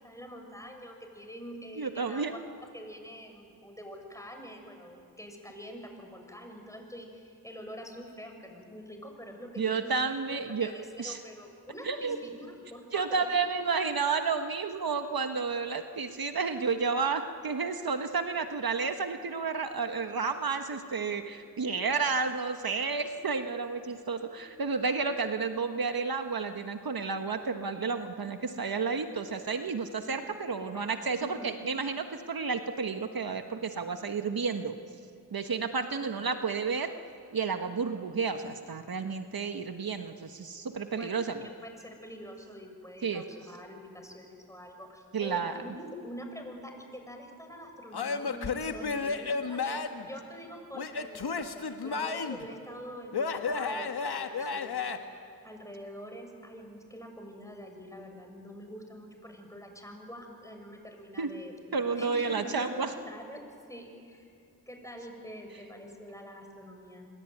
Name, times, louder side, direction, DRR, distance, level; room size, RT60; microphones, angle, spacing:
voice 1, 0.0-2.4 2.7-10.0 10.3-13.3 30.2-30.3 30.6-30.9 31.2-31.5 35.8-36.1 40.9-41.2 41.6-51.5 51.8-54.9 55.4-63.4 63.7-64.3 64.7-67.1, equal, 10° left, 4 dB, 6.7 m, -45 dB
voice 2, 1.7-2.3 9.6-10.7 11.0-11.2 11.8-12.2 12.9-34.7 35.3-36.9 37.3-41.4 43.0-43.2 45.1-45.7 61.2-61.3 61.7-62.9, right 5 dB, 65° right, 7 dB, 1.4 m, -31 dB
Male speech man speaking / Yell / Laughter, 47.9-50.1 50.8-52.5 53.1-55.0, left 4 dB, 85° left, 1.6 m, -32 dB
26.5 x 22.5 x 9.3 m, 2.4 s
cardioid pair, 40°, 38 cm